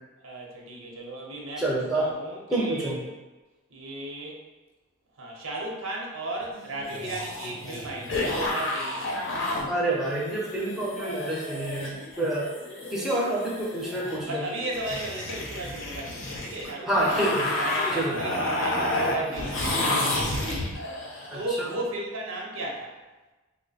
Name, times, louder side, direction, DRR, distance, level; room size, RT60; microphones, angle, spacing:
voice 1, 0.2-3.0 3.7-4.4 5.2-9.2 11.6-12.0 14.3-17.3 17.5-20.7 21.3-23.0, right 2 dB, 85° right, -1 dB, 0.8 m, -35 dB
voice 2, 1.6-2.1 2.5-3.0 9.7-12.5 12.9-14.4 16.9-17.6 17.9-18.2 21.3-21.7, right 1 dB, ahead, -6 dB, 0.6 m, -28 dB
sound 1, 6.5-21.5, left 2 dB, 65° left, 0.7 m, -31 dB
3.0 x 2.1 x 4.0 m, 1.1 s
head